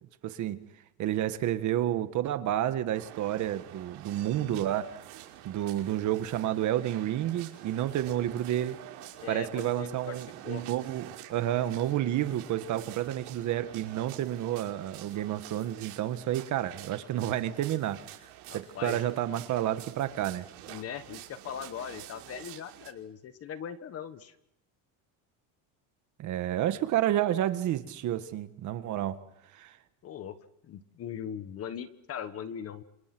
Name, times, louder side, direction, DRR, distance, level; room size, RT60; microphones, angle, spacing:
voice 1, 0.2-0.6 1.0-4.9 5.4-8.8 9.3-20.5 26.2-29.2 29.5-29.8, right 12 dB, 40° right, 1.6 m, -30 dB
sound 1, 2.9-22.9, right 13 dB, 90° right, 5.4 m, -48 dB
voice 2, 9.2-10.2 10.4-10.6 18.5-19.0 20.7-24.3 30.0-30.4 30.7-32.8, left 8 dB, 30° left, 1.4 m, -40 dB
28.5 x 27.0 x 6.2 m
cardioid pair, 170°, 44 cm